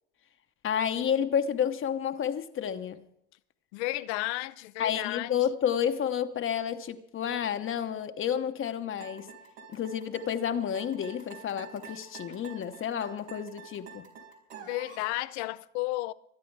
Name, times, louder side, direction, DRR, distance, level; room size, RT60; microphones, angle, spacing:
voice 1, 0.6-3.0 4.8-9.3 9.7-14.1, left 8 dB, 35° left, 1.0 m, -30 dB
voice 2, 3.7-5.3 14.7-16.1, left 18 dB, 75° left, 0.7 m, -32 dB
sound 1, 9.0-15.1, right 5 dB, 85° right, 4.3 m, -47 dB
23.5 x 9.9 x 4.7 m
supercardioid pair, 90°, 34 cm